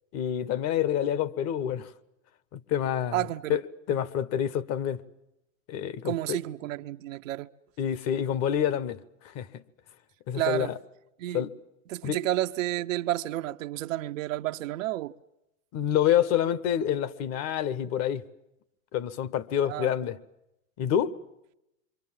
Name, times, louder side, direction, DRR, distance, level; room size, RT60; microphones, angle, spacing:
voice 1, 0.1-1.9 2.5-3.6 3.9-5.0 5.7-6.4 7.8-9.6 10.3-10.8 11.3-11.5 12.0-12.2 15.7-18.2 18.9-20.2 20.8-21.1, left 10 dB, 40° left, 1.3 m, -27 dB
voice 2, 3.1-3.6 6.0-7.5 10.3-10.7 11.2-11.4 11.9-15.1 19.7-19.9, right 15 dB, 70° right, 0.9 m, -30 dB
27.5 x 24.5 x 7.5 m
hypercardioid pair, 120°, 40 cm